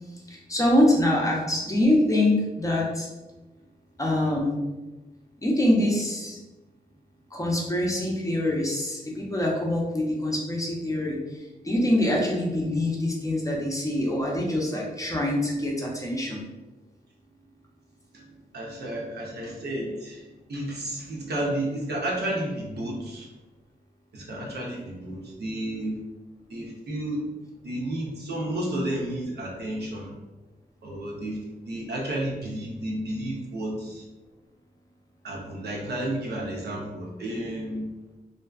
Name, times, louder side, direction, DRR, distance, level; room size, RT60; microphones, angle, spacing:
voice 1, 0.1-3.1 4.0-4.6 5.4-6.4 7.3-16.4, left 1 dB, 20° left, -2 dB, 0.6 m, -25 dB
voice 2, 18.5-23.3 24.1-26.0 26.5-27.3 27.6-30.1 30.8-31.4 31.7-34.0 35.2-37.9, right 1 dB, 80° right, -3 dB, 0.7 m, -32 dB
2.5 x 2.2 x 2.3 m, 1.1 s
cardioid pair, 75°, 17 cm